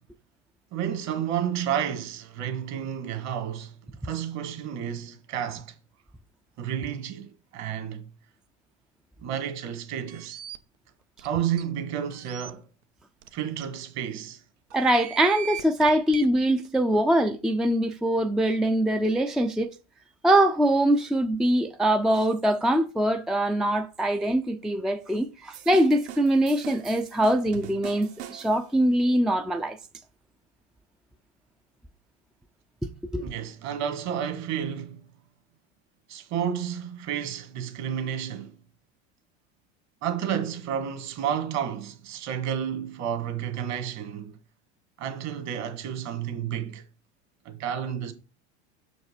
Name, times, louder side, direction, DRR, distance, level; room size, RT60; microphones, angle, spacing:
voice 1, 0.7-3.7 4.0-5.7 6.6-8.1 9.2-10.4 11.2-12.7 13.3-14.4 33.2-35.0 36.1-38.5 40.0-44.4 45.0-46.8 47.5-48.1, right 9 dB, 50° right, 1.8 m, -31 dB
sound 1, 10.1-10.6 11.2-11.3 11.6-11.7 12.1-12.5 13.2-13.3 13.6-13.7 14.7-16.3, right 11 dB, 90° right, 0.9 m, -39 dB
voice 2, 14.7-19.7 20.2-29.8 33.1-33.3, right 1 dB, ahead, 0.4 m, -23 dB
sound 2, 25.5-28.7, right 10 dB, 70° right, 1.5 m, -43 dB
6.4 x 5.2 x 4.9 m
supercardioid pair, 110°, 34 cm